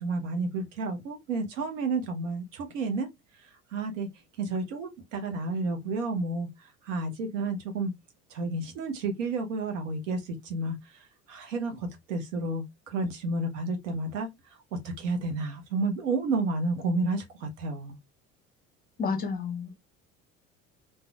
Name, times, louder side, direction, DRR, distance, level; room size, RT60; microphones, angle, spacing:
voice 1, 0.0-3.1 3.7-4.1 4.4-6.5 6.8-7.9 8.3-10.8 11.3-14.3 15.0-18.0, right 3 dB, 65° right, 0.9 m, -31 dB
voice 2, 19.0-19.7, left 5 dB, 20° left, 0.6 m, -30 dB
3.3 x 2.1 x 2.2 m
figure-of-eight pair, 60°, 41 cm